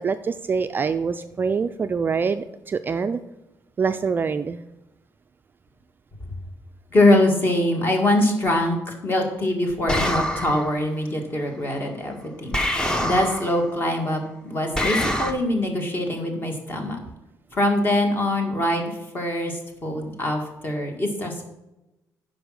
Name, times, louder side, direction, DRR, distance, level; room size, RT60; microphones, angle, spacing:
voice 1, 0.0-3.2 3.8-4.6, right 5 dB, 30° right, 10 dB, 0.3 m, -25 dB
voice 2, 6.9-17.0 17.5-21.4, left 1 dB, 30° left, 3 dB, 1.8 m, -23 dB
sound 1, 9.9-10.7 12.5-13.6 14.7-15.3, equal, 10° left, 0.8 m, -25 dB
10.0 x 5.3 x 6.3 m, 0.96 s
cardioid pair, 150°, 7 cm